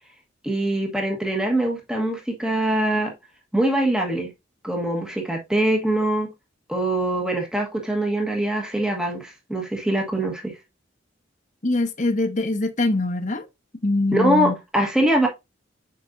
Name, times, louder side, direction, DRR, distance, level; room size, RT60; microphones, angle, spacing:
voice 1, 0.4-3.1 3.5-4.3 4.6-6.3 6.7-10.6 14.1-15.3, right 1 dB, 5° right, 1.3 m, -23 dB
voice 2, 11.6-13.5 13.8-14.5, left 2 dB, 40° left, 1.1 m, -23 dB
7.6 x 5.2 x 2.6 m
head